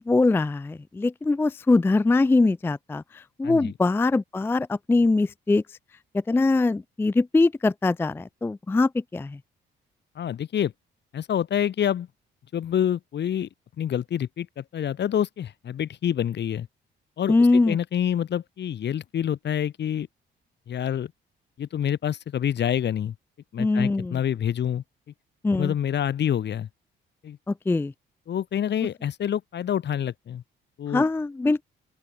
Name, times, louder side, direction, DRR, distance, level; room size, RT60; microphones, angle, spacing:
voice 1, 0.0-5.6 6.3-9.4 17.3-17.8 23.6-24.2 25.4-25.7 27.5-27.9 30.9-31.6, left 3 dB, 10° left, 0.4 m, -22 dB
voice 2, 10.2-10.7 11.1-12.1 12.5-13.5 13.8-16.7 17.2-20.1 20.7-21.1 21.6-23.1 23.5-24.8 25.6-26.7 27.2-27.4 28.3-30.4 30.8-31.0, left 9 dB, 60° left, 2.5 m, -27 dB
open air
cardioid pair, 90°, 20 cm